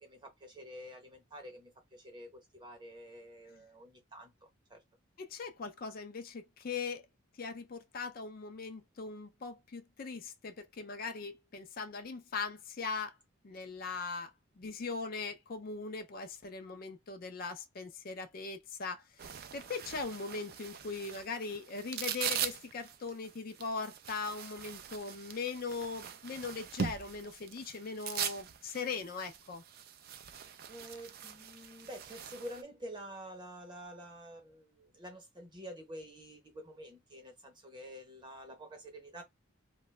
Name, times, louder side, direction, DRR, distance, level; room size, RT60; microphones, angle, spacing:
voice 1, 0.0-4.8 30.7-39.2, equal, 20° right, 0.9 m, -48 dB
voice 2, 5.2-7.1 7.4-13.2 13.4-29.6, left 4 dB, 45° left, 0.4 m, -40 dB
sound 1, 19.2-32.6, right 8 dB, 45° right, 0.3 m, -42 dB
2.9 x 2.2 x 3.1 m
head